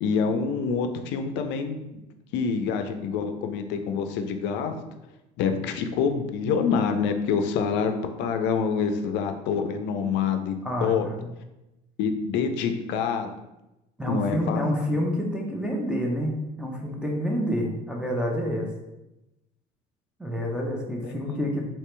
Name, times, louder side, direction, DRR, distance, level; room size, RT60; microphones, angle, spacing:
voice 1, 0.0-2.0 2.3-4.7 5.4-11.1 12.0-13.3 14.1-14.6 21.0-21.4, left 6 dB, 65° left, 7 dB, 0.5 m, -26 dB
voice 2, 10.6-11.3 14.0-18.7 20.2-21.7, equal, 5° right, -1 dB, 0.8 m, -28 dB
2.9 x 2.9 x 3.3 m, 0.95 s
hypercardioid pair, 75°, 20 cm